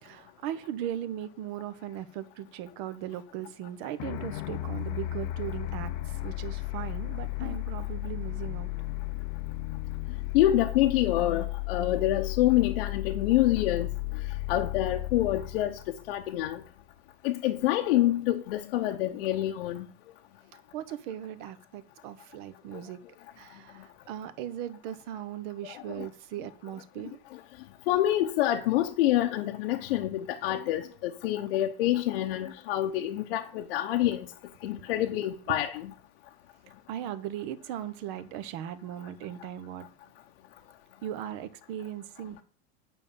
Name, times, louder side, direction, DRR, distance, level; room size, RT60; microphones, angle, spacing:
voice 1, 0.0-8.7 20.7-23.0 23.4-27.2 34.0-34.1 35.5-35.6 36.9-39.9 41.0-42.4, right 11 dB, 50° right, 1.1 m, -38 dB
sound 1, 4.0-16.7, left 17 dB, 45° left, 0.7 m, -34 dB
voice 2, 10.3-13.9 14.5-16.6 17.2-19.9 25.7-26.1 27.9-34.3 34.6-35.9, left 13 dB, 70° left, 0.9 m, -27 dB
9.0 x 5.6 x 7.2 m
supercardioid pair, 160°, 31 cm